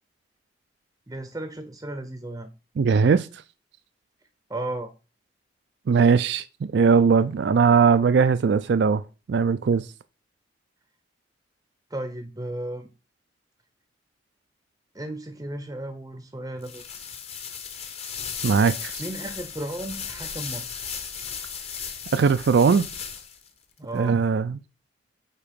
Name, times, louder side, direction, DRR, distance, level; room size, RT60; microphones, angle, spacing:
voice 1, 1.1-2.5 4.5-4.9 11.9-12.9 14.9-16.8 19.0-20.9 23.8-24.2, right 1 dB, 20° right, 0.6 m, -34 dB
voice 2, 2.8-3.3 5.9-9.0 9.3-9.9 18.4-18.9 22.1-22.9 23.9-24.6, right 5 dB, 65° right, 0.4 m, -19 dB
sound 1, 16.6-23.5, left 6 dB, 35° left, 1.0 m, -36 dB
8.4 x 3.0 x 5.1 m
head